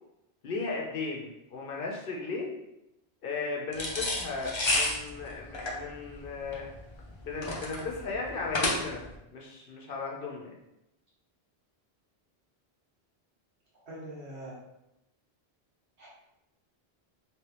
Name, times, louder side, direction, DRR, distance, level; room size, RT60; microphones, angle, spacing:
voice 1, 0.4-2.6 3.2-6.7 7.2-9.0 9.3-10.5, left 4 dB, 60° left, -1 dB, 0.9 m, -36 dB
sound 1, 3.7-9.2, left 2 dB, 35° left, 0.5 m, -31 dB
voice 2, 13.8-14.6 16.0-16.1, right 1 dB, 85° right, -7 dB, 1.6 m, -42 dB
3.2 x 3.2 x 3.0 m, 0.88 s
omnidirectional pair, 1.1 m